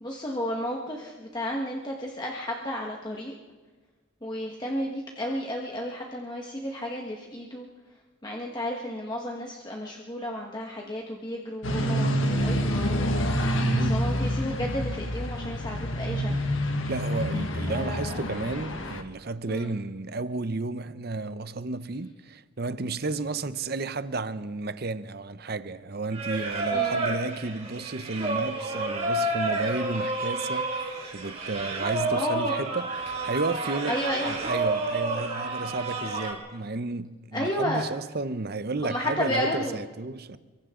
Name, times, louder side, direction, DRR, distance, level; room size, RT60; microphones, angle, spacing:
voice 1, 0.0-3.3 4.2-7.7 8.2-13.1 13.8-16.3 17.7-18.2 19.5-19.8 26.7-27.1 32.1-32.6 33.9-34.3 37.3-37.8 38.8-39.8, left 1 dB, 20° left, 1.4 m, -32 dB
sound 1, 11.6-19.0, equal, 65° left, 1.6 m, -27 dB
voice 2, 13.6-14.0 16.9-34.0 34.2-40.4, right 3 dB, 45° right, 0.7 m, -32 dB
Singing, 26.1-36.3, right 2 dB, 30° right, 4.2 m, -30 dB
29.5 x 23.5 x 3.8 m
head